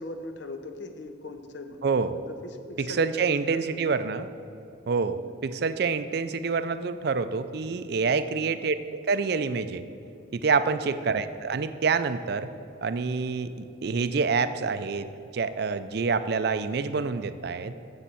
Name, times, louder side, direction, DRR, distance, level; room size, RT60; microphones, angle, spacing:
voice 1, 0.0-1.9 2.2-3.9 5.1-5.2 8.1-8.5 10.6-10.9, left 1 dB, 60° left, 7 dB, 0.7 m, -40 dB
voice 2, 1.8-2.2 2.8-4.3 4.9-9.8 10.3-12.5 12.8-15.1 15.3-17.7, right 5 dB, 55° right, 12 dB, 0.4 m, -27 dB
7.2 x 6.9 x 7.4 m, 2.6 s
head